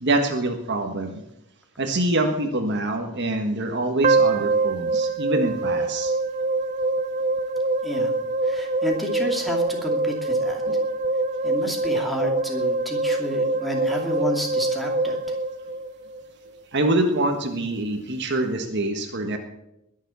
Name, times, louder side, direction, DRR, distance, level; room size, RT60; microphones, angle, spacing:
voice 1, 0.0-1.2 1.8-6.1 10.7-10.9 16.7-19.4, right 2 dB, 50° right, 5 dB, 1.6 m, -25 dB
sound 1, 4.0-16.3, right 2 dB, 35° right, 0.6 m, -24 dB
voice 2, 8.4-10.6 11.4-15.2, equal, ahead, 1 dB, 2.5 m, -30 dB
21.0 x 7.4 x 7.0 m, 0.85 s
head